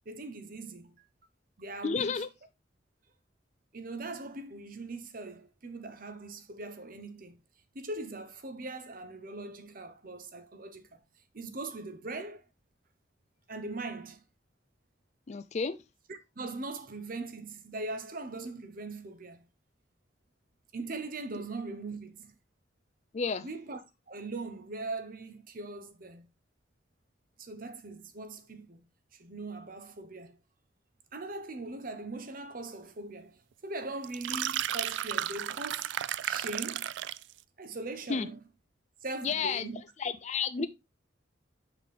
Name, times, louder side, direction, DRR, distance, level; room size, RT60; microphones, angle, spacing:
voice 1, 0.1-1.0 1.6-2.3 3.7-7.4 7.7-11.0 11.3-12.4 13.5-14.2 16.1-19.4 20.7-22.3 23.4-23.8 24.1-26.3 27.4-28.8 29.1-30.4 31.1-35.9 36.2-36.9 37.6-38.4 39.0-39.8 40.6-40.7, right 2 dB, 50° right, 0.9 m, -40 dB
voice 2, 1.8-2.3 15.3-15.8 23.1-23.5 38.1-38.3 39.2-39.7 40.0-40.7, left 5 dB, 35° left, 0.4 m, -31 dB
sound 1, 34.0-37.3, right 11 dB, 70° right, 0.3 m, -33 dB
6.0 x 6.0 x 3.3 m
head